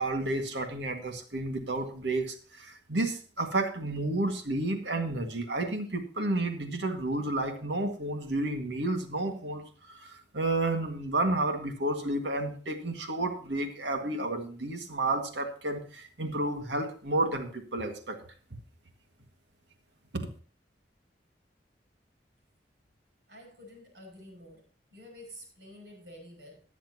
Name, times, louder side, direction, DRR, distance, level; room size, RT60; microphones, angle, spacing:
voice 1, 0.0-18.2 20.1-20.3, right 2 dB, 85° right, 5 dB, 1.9 m, -31 dB
voice 2, 23.3-24.7 24.9-26.6, equal, 70° right, -1 dB, 7.4 m, -49 dB
21.5 x 7.3 x 2.9 m, 0.41 s
head